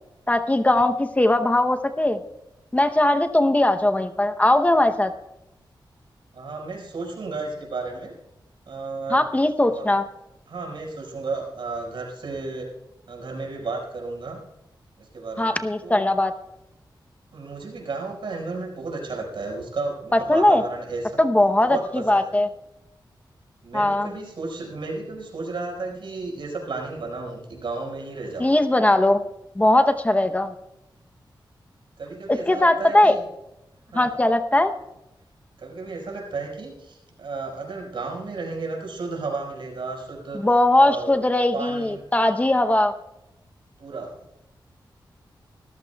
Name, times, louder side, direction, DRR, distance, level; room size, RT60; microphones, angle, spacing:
voice 1, 0.3-2.2 2.7-5.1 9.1-10.0 15.4-16.3 20.1-20.6 21.2-22.5 23.7-24.1 28.4-29.2 29.6-30.5 32.3-33.1 33.9-34.7 40.3-42.9, left 1 dB, 15° left, 7 dB, 0.8 m, -19 dB
voice 2, 6.3-8.1 8.7-9.2 9.7-9.8 10.5-12.7 13.1-14.4 15.0-15.6 15.8-16.1 17.3-21.2 21.6-22.3 23.6-28.5 32.0-33.2 33.9-34.2 35.6-40.4 40.8-41.2 41.5-42.0 43.8-44.2, right 3 dB, 85° right, 0 dB, 5.0 m, -33 dB
24.5 x 14.5 x 2.3 m, 0.90 s
wide cardioid pair, 120°, 8 cm